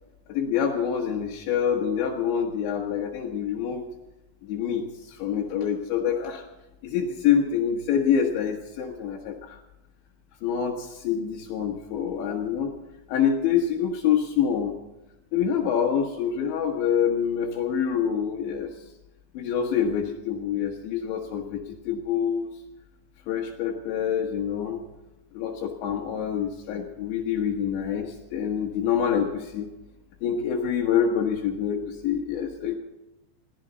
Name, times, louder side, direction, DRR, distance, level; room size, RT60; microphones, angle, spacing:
voice 1, 0.3-3.9 4.4-6.4 6.8-9.6 10.4-12.7 13.1-14.7 15.3-18.7 19.4-22.5 23.3-24.9 25.3-29.7 30.2-32.8, left 8 dB, 75° left, 0 dB, 3.5 m, -26 dB
21.5 x 15.5 x 4.0 m, 1.0 s
omnidirectional pair, 5.4 m